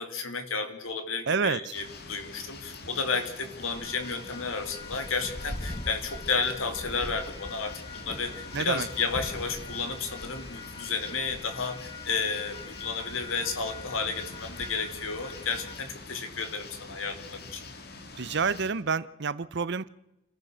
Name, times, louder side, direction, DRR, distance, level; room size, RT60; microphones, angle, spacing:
voice 1, 0.0-17.6, left 4 dB, 80° left, 2.8 m, -32 dB
voice 2, 1.3-1.8 8.5-8.9 18.2-19.9, right 5 dB, 55° right, 0.7 m, -28 dB
sound 1, 1.7-18.7, left 3 dB, 50° left, 2.2 m, -45 dB
sound 2, 3.7-15.8, left 2 dB, 25° left, 1.2 m, -42 dB
29.0 x 14.5 x 6.3 m
head